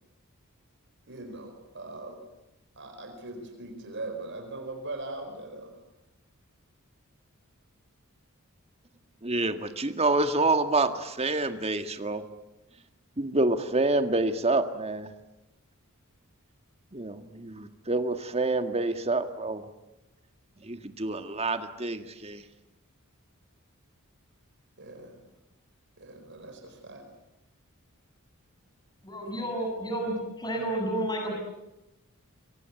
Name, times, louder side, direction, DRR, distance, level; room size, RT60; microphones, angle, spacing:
voice 1, 1.1-2.2 2.8-5.7 24.8-25.2 26.0-27.0, right 2 dB, 55° right, 6 dB, 4.6 m, -40 dB
voice 2, 9.2-12.2 13.2-15.1 16.9-19.7 20.6-22.4, right 2 dB, 30° right, 8 dB, 1.9 m, -27 dB
voice 3, 29.0-31.3, right 1 dB, 20° left, 2 dB, 7.7 m, -31 dB
27.0 x 24.5 x 8.4 m, 0.95 s
head